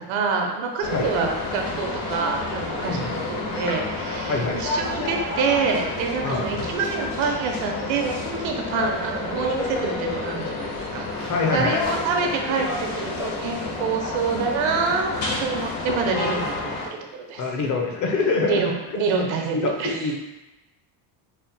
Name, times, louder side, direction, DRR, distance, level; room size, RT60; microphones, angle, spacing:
voice 1, 0.0-15.1 15.4-16.8 17.1-17.4 18.4-20.0, right 4 dB, 70° right, 2 dB, 0.8 m, -26 dB
sound 1, 0.8-16.8, left 3 dB, 75° left, 1.2 m, -30 dB
voice 2, 4.3-4.6 6.2-6.5 11.2-11.8 17.4-18.8 19.5-20.1, left 3 dB, 40° left, 1 dB, 0.6 m, -25 dB
4.2 x 2.1 x 4.0 m, 1.0 s
cardioid pair, 145°, 48 cm